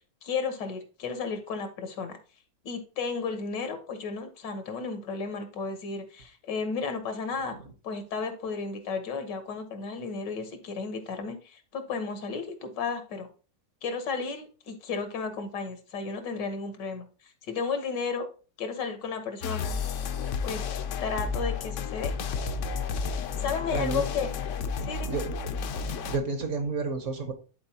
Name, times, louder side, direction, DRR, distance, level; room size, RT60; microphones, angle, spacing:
voice 1, 0.2-2.2 2.6-7.5 7.8-13.3 13.8-18.3 18.6-19.8 20.4-20.6 21.0-22.1 23.4-24.3 24.8-25.2, left 5 dB, 85° left, 7 dB, 1.8 m, -33 dB
sound 1, 19.4-26.2, left 5 dB, 65° left, 0.7 m, -32 dB
voice 2, 23.7-24.1 25.1-25.2 26.1-27.3, right 3 dB, 50° right, 6 dB, 1.2 m, -30 dB
10.5 x 4.2 x 2.8 m, 0.35 s
omnidirectional pair, 1.8 m